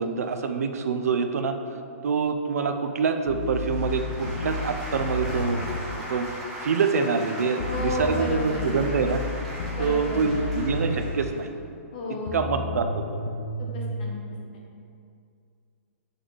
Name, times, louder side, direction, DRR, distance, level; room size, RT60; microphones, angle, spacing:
voice 1, 0.0-1.6 2.0-5.8 6.1-9.2 9.8-11.5 12.1-13.2, right 5 dB, 85° right, 7 dB, 0.5 m, -26 dB
sound 1, 3.3-5.9 7.6-11.2 12.3-13.9, left 2 dB, 50° left, 0.5 m, -32 dB
sound 2, 3.4-11.4, equal, ahead, 1.1 m, -38 dB
voice 2, 7.6-8.7 9.7-10.5 11.9-12.3 13.6-14.1 14.5-14.6, left 2 dB, 35° left, -2 dB, 1.0 m, -32 dB
7.9 x 3.1 x 4.0 m, 2.4 s
hypercardioid pair, 175°, 8 cm